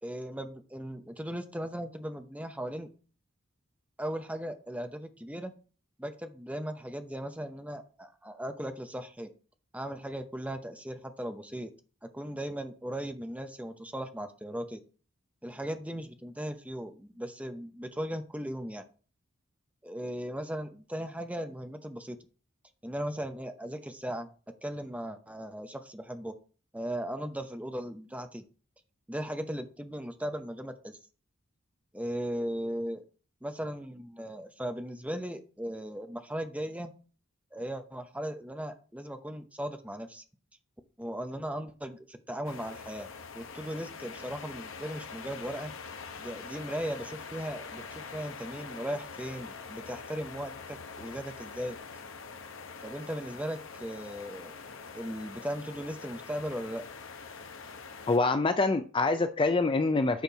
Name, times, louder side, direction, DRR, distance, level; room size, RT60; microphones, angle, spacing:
voice 1, 0.0-2.9 4.0-5.5 6.0-9.3 9.7-11.7 12.0-14.8 15.4-18.8 19.8-22.2 22.8-24.3 24.6-26.3 26.7-28.4 29.1-30.9 31.9-33.0 33.4-36.9 37.5-40.2 41.0-43.1 43.3-45.7 46.2-51.8 52.8-54.5 54.9-56.8, equal, 5° right, 0.7 m, -37 dB
sound 1, 42.4-58.2, left 5 dB, 65° left, 0.9 m, -44 dB
voice 2, 58.1-60.2, left 3 dB, 25° left, 0.4 m, -25 dB
8.2 x 4.4 x 5.6 m
head